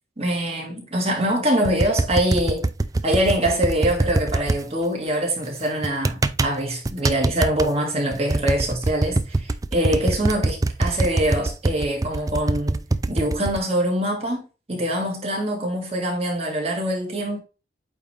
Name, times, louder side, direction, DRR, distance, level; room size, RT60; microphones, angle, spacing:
voice 1, 0.2-2.7 3.0-12.8 13.1-14.4 14.7-17.4, right 1 dB, 35° right, 2.1 m, -24 dB
sound 1, 1.6-4.6 5.8-6.5 6.9-7.7 8.1-13.6, right 2 dB, 20° right, 0.4 m, -23 dB
8.6 x 3.4 x 3.3 m
head